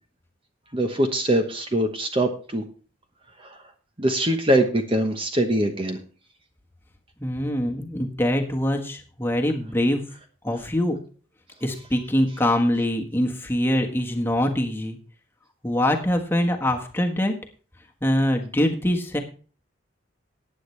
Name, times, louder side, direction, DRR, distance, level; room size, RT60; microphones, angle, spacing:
voice 1, 0.7-2.6 3.5-3.6 4.0-6.0, right 1 dB, 25° right, 5 dB, 1.1 m, -23 dB
voice 2, 7.2-10.0 10.4-11.0 11.6-15.0 15.6-17.3 18.0-19.2, left 1 dB, 10° left, 2 dB, 1.4 m, -23 dB
15.5 x 9.8 x 3.3 m, 0.39 s
head